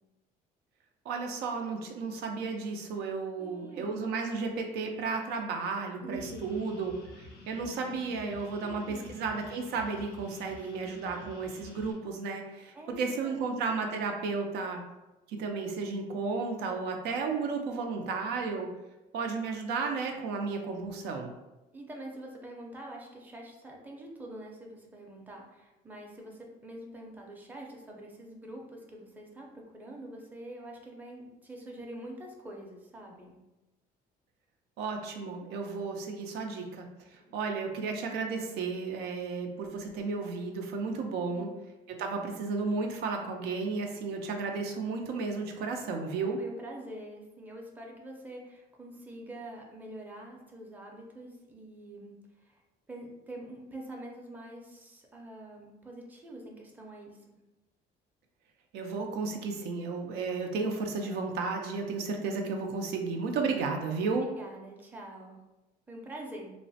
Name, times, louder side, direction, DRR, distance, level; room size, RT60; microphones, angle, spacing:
voice 1, 1.1-6.9 7.2-14.8 15.3-18.7 19.1-21.3 34.8-41.5 41.9-46.4 58.7-64.3, right 4 dB, 80° right, 3 dB, 0.4 m, -33 dB
voice 2, 3.4-4.0 6.0-6.8 8.6-9.2 10.5-11.0 12.7-13.6 21.7-33.4 37.1-37.4 46.2-52.6 52.9-57.4 64.2-65.4 65.9-66.5, right 1 dB, 10° right, -1 dB, 0.5 m, -45 dB
sound 1, 6.1-11.9, left 2 dB, 80° left, 0.7 m, -50 dB
3.0 x 2.0 x 2.7 m, 1.0 s
cardioid pair, 110°, 17 cm